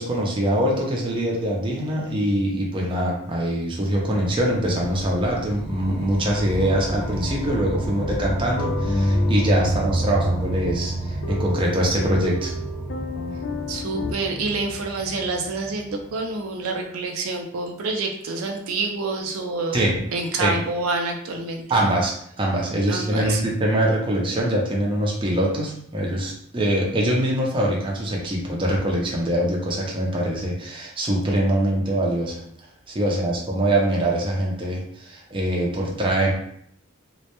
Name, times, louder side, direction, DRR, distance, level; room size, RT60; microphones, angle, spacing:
voice 1, 0.0-12.5 19.7-20.1 20.4-20.6 21.7-32.4 32.9-36.3, right 1 dB, 25° right, -2 dB, 0.4 m, -23 dB
sound 1, 3.9-16.4, equal, 5° left, 0.8 m, -33 dB
sound 2, 8.4-14.1, equal, 60° left, 0.4 m, -27 dB
voice 2, 13.7-21.8 22.9-23.4, right 3 dB, 85° right, 3 dB, 0.4 m, -28 dB
2.1 x 2.1 x 2.8 m, 0.67 s
head